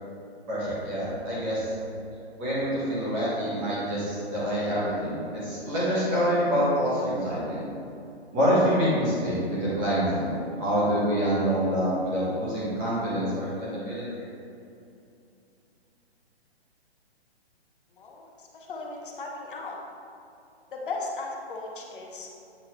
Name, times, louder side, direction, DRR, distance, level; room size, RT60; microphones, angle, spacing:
voice 1, 0.5-1.7 2.4-7.6 8.3-14.0, equal, 15° right, -9 dB, 1.3 m, -26 dB
voice 2, 18.0-18.3 18.7-19.8 20.7-22.3, left 3 dB, 50° left, 0 dB, 0.9 m, -36 dB
8.2 x 3.8 x 3.0 m, 2.6 s
hypercardioid pair, 170°, 33 cm